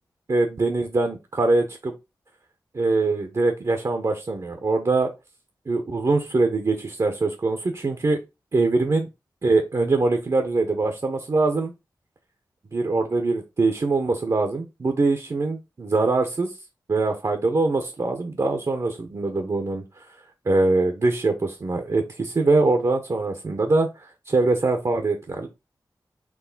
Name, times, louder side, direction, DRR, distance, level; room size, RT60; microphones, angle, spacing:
voice 1, 0.3-1.9 2.7-5.1 5.7-8.2 8.5-9.1 9.4-11.7 12.7-16.5 16.9-19.8 20.4-25.5, right 3 dB, 50° right, 5 dB, 0.9 m, -23 dB
4.7 x 2.7 x 4.0 m, 0.25 s
cardioid pair, 55°, 8 cm